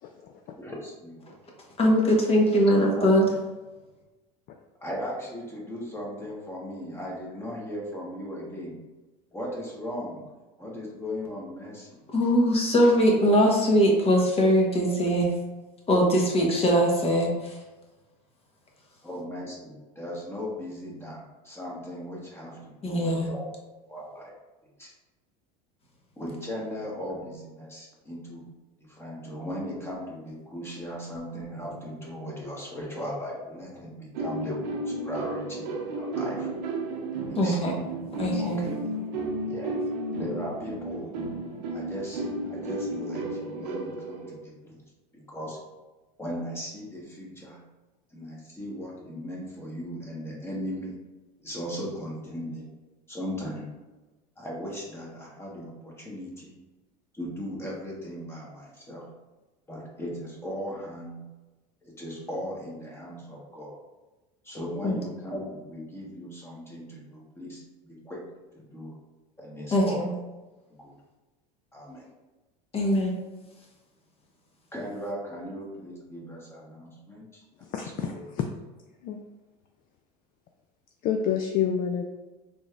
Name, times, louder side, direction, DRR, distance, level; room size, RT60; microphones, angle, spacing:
voice 1, 0.0-0.3 77.6-78.5 79.0-79.2 81.0-82.1, left 8 dB, 45° left, 4 dB, 0.4 m, -28 dB
voice 2, 0.6-1.2 2.9-3.1 4.8-8.8 9.3-10.2 10.6-12.0 19.0-23.4 23.9-24.3 24.8-24.9 26.2-28.4 28.8-36.5 37.2-37.6 38.4-38.7 39.5-39.7 40.2-41.1 41.7-44.8 45.1-45.6 46.2-47.6 48.1-51.0 51.4-52.7 53.1-53.7 54.4-56.6 57.1-59.0 59.7-61.2 61.8-63.7 64.4-68.2 68.5-68.9 69.4-70.0 70.8-70.9 71.7-72.1 74.7-77.4 78.1-78.2, equal, 10° left, -3 dB, 1.3 m, -37 dB
voice 3, 1.8-3.2 12.1-15.3 15.9-17.6 22.8-23.3 37.3-37.7 38.2-38.7 64.8-65.0 69.7-70.1 72.7-73.2, equal, 30° left, -1 dB, 1.0 m, -21 dB
sound 1, 34.1-44.3, right 2 dB, 85° right, 0.7 m, -33 dB
3.9 x 3.3 x 2.4 m, 1.1 s
supercardioid pair, 100°, 21 cm